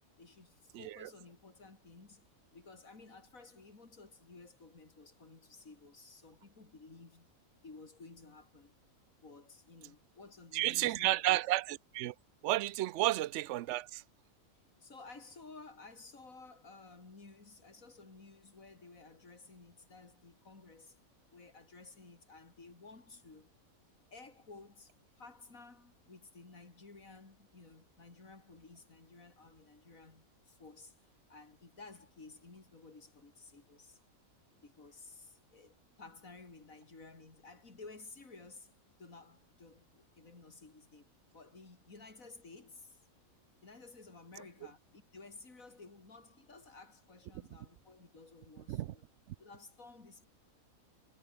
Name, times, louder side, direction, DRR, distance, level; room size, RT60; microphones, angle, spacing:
voice 1, 0.2-2.2 2.5-7.3 7.6-8.7 9.2-11.4 13.0-13.1 14.8-21.0 21.3-23.5 24.1-30.9 31.3-34.0 34.6-38.7 39.0-43.0 43.6-49.1 49.4-50.3, left 3 dB, 65° left, 4.1 m, -55 dB
voice 2, 0.7-1.1 10.5-12.1 12.4-14.0 48.7-48.9, right 16 dB, 65° right, 0.8 m, -32 dB
omnidirectional pair, 1.5 m